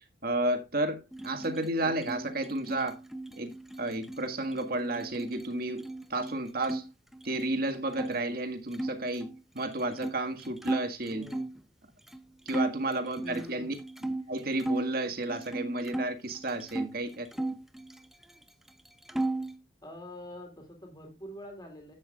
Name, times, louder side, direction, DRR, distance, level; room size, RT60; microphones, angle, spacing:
voice 1, 0.0-3.0 3.4-6.9 7.2-11.2 12.5-13.7 14.0-17.3, right 2 dB, 50° right, 1.8 m, -32 dB
sound 1, 1.1-6.8 7.1-8.1 8.7-11.6 12.1-12.2 12.5-14.9 15.3-16.9 17.3-18.4 18.7-19.6, right 2 dB, ahead, 0.7 m, -36 dB
voice 2, 1.8-2.1 11.1-11.5 13.2-13.8 14.2-14.3 17.3-17.5 19.8-22.0, equal, 20° left, 3.5 m, -46 dB
12.5 x 8.7 x 2.4 m
head